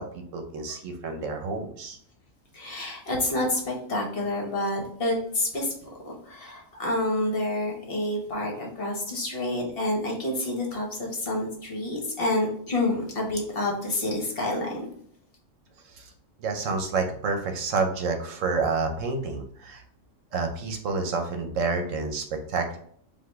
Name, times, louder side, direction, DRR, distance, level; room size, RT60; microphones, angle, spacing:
voice 1, 0.0-2.0 15.9-16.1 16.4-19.8 20.3-22.8, right 4 dB, 75° right, 5 dB, 1.0 m, -29 dB
voice 2, 2.5-14.9, left 1 dB, 50° left, -1 dB, 1.1 m, -28 dB
4.7 x 2.6 x 3.4 m, 0.63 s
omnidirectional pair, 1.4 m